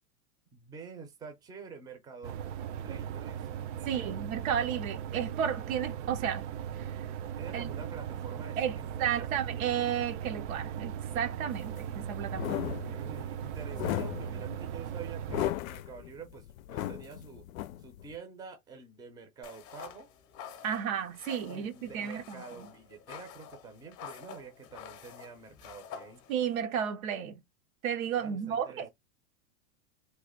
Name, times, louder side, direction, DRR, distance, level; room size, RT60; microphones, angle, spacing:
voice 1, 0.5-2.4 2.8-4.2 7.4-9.5 12.8-17.4 17.8-20.1 21.5-26.2 28.2-28.9, right 5 dB, 10° right, 0.5 m, -48 dB
sound 1, 2.2-15.5, right 9 dB, 60° right, 0.5 m, -38 dB
voice 2, 3.8-6.4 6.8-6.9 7.5-7.7 8.6-12.7 20.6-22.4 26.3-27.4 27.8-28.9, right 8 dB, 80° right, 0.9 m, -33 dB
sound 2, 11.5-18.2, left 14 dB, 80° left, 0.5 m, -36 dB
sound 3, 19.4-26.6, left 7 dB, 35° left, 0.7 m, -48 dB
3.2 x 2.2 x 3.6 m
supercardioid pair, 145°, 41 cm